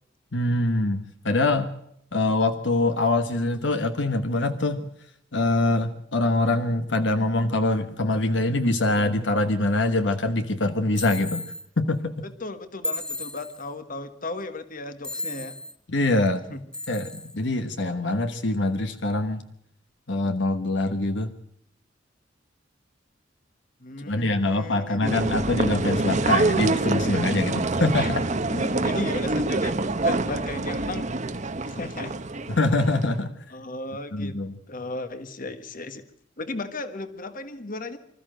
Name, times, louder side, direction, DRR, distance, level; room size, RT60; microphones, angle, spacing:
voice 1, 0.3-1.7 2.1-4.9 5.3-12.2 15.9-16.4 16.9-19.4 20.1-21.3 24.0-28.2 32.5-33.4 34.1-34.6, left 2 dB, 65° left, 8 dB, 1.2 m, -24 dB
sound 1, 10.9-11.7 12.8-13.7 15.0-15.7 16.7-17.4, left 2 dB, 5° left, 0.7 m, -34 dB
voice 2, 12.2-15.6 16.5-16.6 23.8-25.5 28.0-28.2 28.5-29.7 30.0-31.1 31.7-32.2 33.5-34.4 34.7-36.0 36.4-38.0, left 2 dB, 45° left, 10 dB, 1.5 m, -35 dB
sound 2, 25.0-33.2, right 2 dB, 40° right, 1.1 m, -26 dB
25.5 x 14.0 x 7.8 m, 0.73 s
head